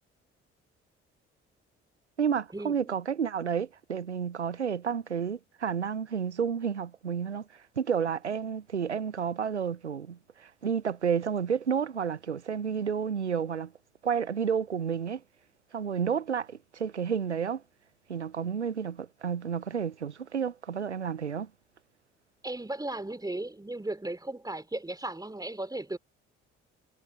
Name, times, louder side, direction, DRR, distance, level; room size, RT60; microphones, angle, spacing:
voice 1, 2.2-7.5 7.8-13.7 14.0-15.2 15.7-17.6 18.1-21.5, right 7 dB, 90° right, 0.6 m, -31 dB
voice 2, 22.4-26.0, right 2 dB, 10° right, 3.2 m, -36 dB
figure-of-eight pair, 45°, 34 cm